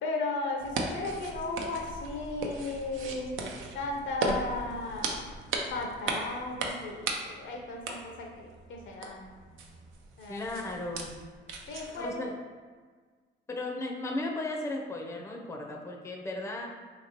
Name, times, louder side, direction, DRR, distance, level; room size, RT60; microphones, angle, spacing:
voice 1, 0.0-3.4 3.7-5.3 5.7-9.2 10.2-10.7 11.7-12.3, left 3 dB, 70° left, 1 dB, 0.6 m, -35 dB
sound 1, 0.6-12.1, right 3 dB, 85° right, 0.5 m, -37 dB
voice 2, 10.3-11.1 11.9-12.3 13.5-16.7, left 2 dB, 15° left, 0 dB, 0.5 m, -35 dB
3.2 x 2.9 x 2.8 m, 1.5 s
cardioid pair, 90°, 20 cm